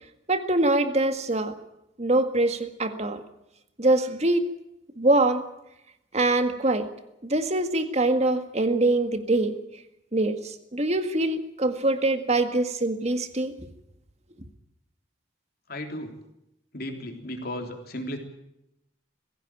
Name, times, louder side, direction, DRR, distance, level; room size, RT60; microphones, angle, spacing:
voice 1, 0.3-1.5 2.0-3.2 3.8-4.5 5.0-5.4 6.1-6.9 7.2-9.5 10.1-13.5, right 2 dB, 35° right, 8 dB, 1.8 m, -24 dB
voice 2, 15.7-16.1 16.7-18.2, left 1 dB, 55° left, 4 dB, 3.6 m, -34 dB
21.0 x 16.0 x 9.1 m, 0.85 s
head